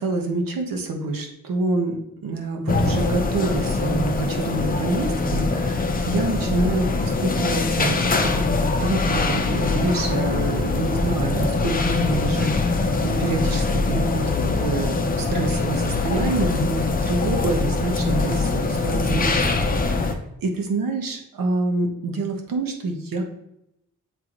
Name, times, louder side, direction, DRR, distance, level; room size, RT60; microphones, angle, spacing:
voice 1, 0.0-23.2, right 2 dB, 85° right, 3 dB, 1.2 m, -27 dB
sound 1, 2.7-20.1, left 3 dB, 25° left, 0.6 m, -23 dB
8.0 x 3.8 x 3.0 m, 0.84 s
wide cardioid pair, 135°, 33 cm